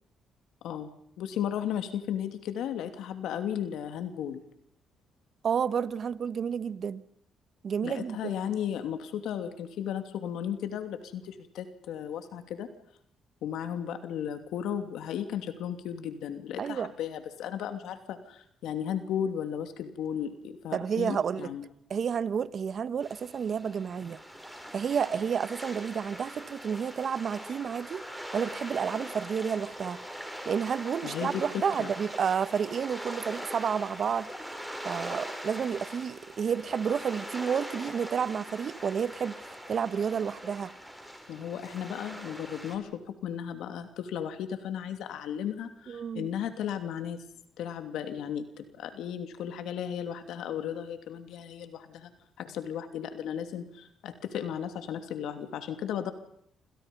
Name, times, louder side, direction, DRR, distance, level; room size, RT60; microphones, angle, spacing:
voice 1, 1.2-4.4 7.8-12.7 13.4-21.7 31.0-31.9 41.3-47.2 47.6-52.1 52.4-56.1, left 9 dB, 85° left, 2.8 m, -35 dB
voice 2, 5.4-7.0 7.6-8.3 16.6-16.9 20.7-21.5 21.9-24.2 24.7-28.0 28.3-30.0 30.4-34.3 34.8-39.4 39.7-40.7 45.9-46.3, right 7 dB, 55° right, 1.3 m, -30 dB
sound 1, 23.0-42.8, equal, ahead, 6.7 m, -42 dB
28.5 x 27.0 x 5.5 m
cardioid pair, 90°, 0 cm